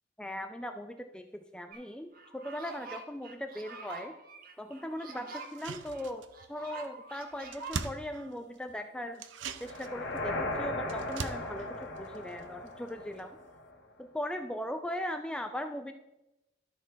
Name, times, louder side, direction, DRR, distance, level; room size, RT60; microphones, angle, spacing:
voice 1, 0.2-1.3 1.5-4.1 4.6-9.2 9.6-13.4 14.0-15.9, equal, 5° left, 6 dB, 0.3 m, -39 dB
sound 1, 1.7-1.8 2.1-7.8, right 3 dB, 50° right, 1.1 m, -46 dB
sound 2, 5.4-6.5 6.8-6.9 7.2-8.7 9.1-12.9 13.2-13.3, right 5 dB, 75° right, 0.5 m, -42 dB
sound 3, 9.6-13.7, left 2 dB, 75° left, 1.3 m, -37 dB
12.5 x 4.2 x 4.5 m, 0.93 s
head